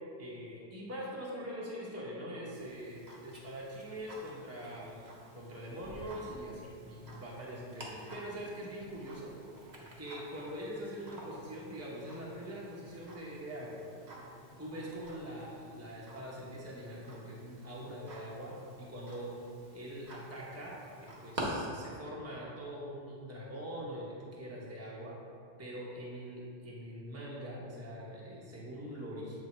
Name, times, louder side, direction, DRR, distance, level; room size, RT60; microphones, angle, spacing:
voice 1, 0.2-9.3 10.0-13.8 14.6-19.3 19.7-25.2 25.6-29.4, equal, 15° right, -5 dB, 0.9 m, -43 dB
Tick-tock, 2.5-21.4, right 1 dB, 40° right, 1.1 m, -51 dB
7.8 x 3.4 x 4.3 m, 2.4 s
omnidirectional pair, 1.1 m